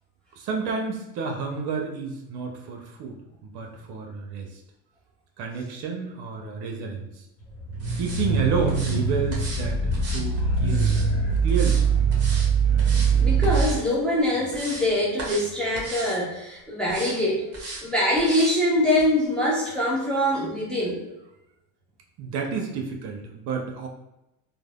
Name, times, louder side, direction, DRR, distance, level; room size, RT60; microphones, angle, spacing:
voice 1, 0.4-4.6 5.4-7.3 8.0-11.0 11.4-11.8 22.2-23.9, right 5 dB, 50° right, 2 dB, 0.7 m, -30 dB
sound 1, 7.6-13.7, right 5 dB, 30° left, 1.1 m, -22 dB
sound 2, 7.8-8.2 8.7-9.0 9.3-9.6 9.9-11.1 11.5-11.8 12.1-12.5 12.8-13.1 13.4-13.8 14.2-14.9 15.2-15.5 15.7-16.2 16.8-17.2 17.5-17.8 18.2-18.6 19.0-19.1, right 2 dB, 30° right, 1.0 m, -37 dB
voice 2, 13.1-17.5 17.8-21.0, left 1 dB, ahead, -6 dB, 0.7 m, -24 dB
3.3 x 2.1 x 2.3 m, 0.92 s
hypercardioid pair, 85°, 49 cm